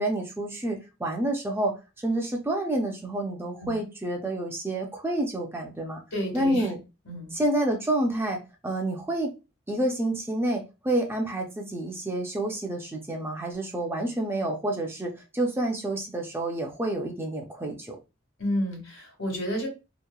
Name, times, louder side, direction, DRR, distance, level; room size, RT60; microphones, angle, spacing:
voice 1, 0.0-6.0 6.3-6.8 7.3-9.3 9.7-18.0, right 1 dB, 10° right, 1 dB, 0.4 m, -29 dB
voice 2, 6.1-6.7 7.0-7.4 18.4-19.7, equal, 80° left, -1 dB, 1.3 m, -31 dB
2.9 x 2.1 x 2.2 m, 0.28 s
head